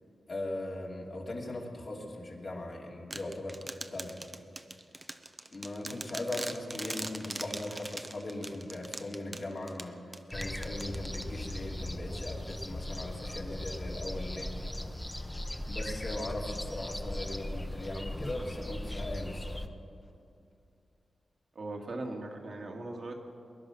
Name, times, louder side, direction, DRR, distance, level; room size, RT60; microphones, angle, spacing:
voice 1, 0.3-3.6 3.9-4.2 5.5-10.0 10.3-14.5 15.7-19.7, left 2 dB, 55° left, -2 dB, 3.0 m, -39 dB
sound 1, 3.1-11.6, right 2 dB, 25° right, 0.8 m, -42 dB
sound 2, 10.3-19.7, left 1 dB, 15° left, 1.1 m, -38 dB
voice 2, 21.6-23.1, right 2 dB, 60° right, 1 dB, 2.0 m, -39 dB
21.0 x 11.0 x 6.1 m, 2.6 s
cardioid pair, 50°, 0 cm